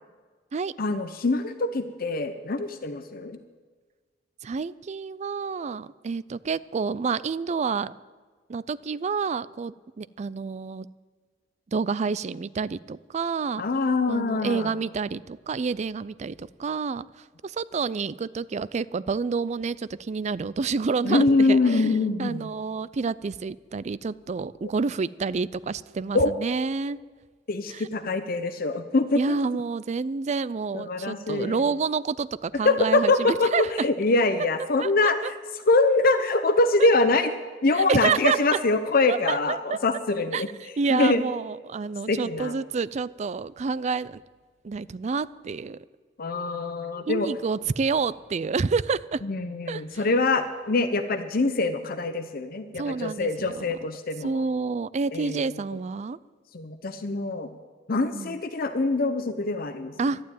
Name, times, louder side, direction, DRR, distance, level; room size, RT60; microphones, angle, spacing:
voice 1, 0.8-3.4 13.6-14.7 21.0-22.5 24.6-24.7 26.1-26.3 27.5-29.2 30.7-31.6 32.6-35.3 35.7-37.3 37.6-40.5 40.9-41.2 42.1-42.5 46.2-47.3 49.2-54.3 55.1-55.4 56.5-57.5 57.9-59.9, left 3 dB, 55° left, 9 dB, 0.7 m, -24 dB
voice 2, 4.4-7.9 8.5-10.9 11.7-13.6 14.1-21.9 22.2-27.0 27.7-27.9 29.1-33.9 34.8-35.3 36.8-36.9 37.7-38.6 39.1-39.8 40.3-44.2 44.6-45.8 47.1-49.2 49.7-50.0 52.8-53.7 54.2-56.2 57.9-58.3 60.0-60.2, right 5 dB, 40° right, 18 dB, 0.4 m, -29 dB
12.0 x 12.0 x 9.0 m, 1.5 s
head